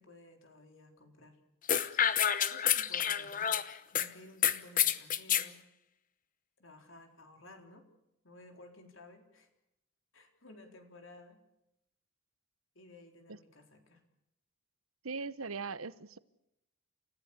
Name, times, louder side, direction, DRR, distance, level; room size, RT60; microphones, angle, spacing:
voice 1, 0.0-1.4 2.4-3.5 3.9-5.6 6.6-7.9 8.2-9.5 10.1-11.4 12.8-14.0, left 2 dB, 65° left, 4 dB, 4.0 m, -55 dB
sound 1, 1.7-4.1 4.4-5.5, left 9 dB, 40° left, 1.0 m, -28 dB
voice 2, 15.0-16.2, right 4 dB, 85° right, 16 dB, 1.0 m, -39 dB
29.5 x 15.0 x 8.4 m, 0.84 s
head